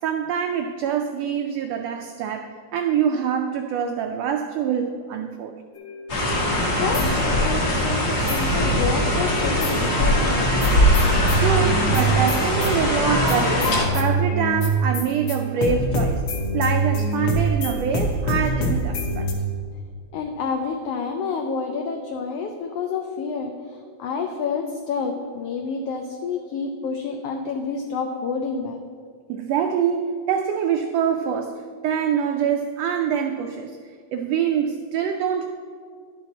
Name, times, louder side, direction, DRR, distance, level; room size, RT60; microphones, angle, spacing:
voice 1, 0.0-5.5 11.0-16.2 16.5-19.3 29.3-33.8 34.1-35.5, right 7 dB, 85° right, 5 dB, 1.4 m, -25 dB
sound 1, 5.8-7.8 8.3-9.9 10.3-19.3, right 2 dB, 65° left, 1.5 m, -25 dB
sound 2, 6.1-13.9, left 1 dB, 45° left, 1.5 m, -21 dB
voice 2, 6.7-7.1 7.4-10.5 20.1-23.5 24.0-28.8, left 5 dB, 85° left, 3 dB, 1.3 m, -28 dB
11.5 x 5.9 x 4.1 m, 2.1 s
omnidirectional pair, 3.4 m